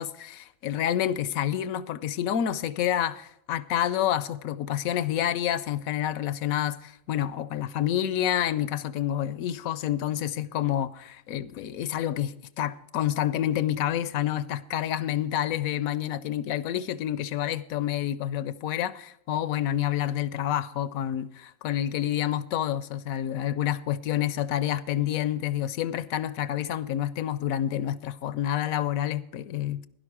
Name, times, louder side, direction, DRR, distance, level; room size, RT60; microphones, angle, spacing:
voice 1, 0.0-29.9, left 11 dB, 90° left, 1.1 m, -28 dB
11.5 x 11.0 x 4.9 m
omnidirectional pair, 1.4 m